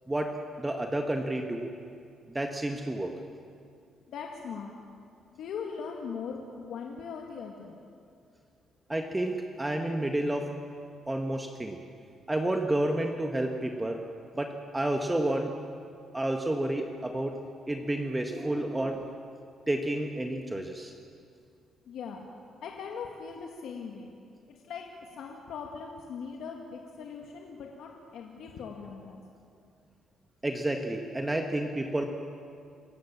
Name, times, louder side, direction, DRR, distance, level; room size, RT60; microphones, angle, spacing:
voice 1, 0.1-1.7 2.3-3.2 8.9-10.5 11.1-11.8 12.3-14.0 14.3-15.5 16.1-17.4 17.7-19.1 19.7-20.9 30.4-32.0, right 1 dB, 15° right, 4 dB, 1.6 m, -30 dB
voice 2, 4.1-4.7 5.3-7.8 21.9-22.2 22.6-24.1 24.5-29.2, left 6 dB, 75° left, 0 dB, 2.1 m, -40 dB
27.0 x 15.5 x 7.4 m, 2.4 s
cardioid pair, 90°, 0 cm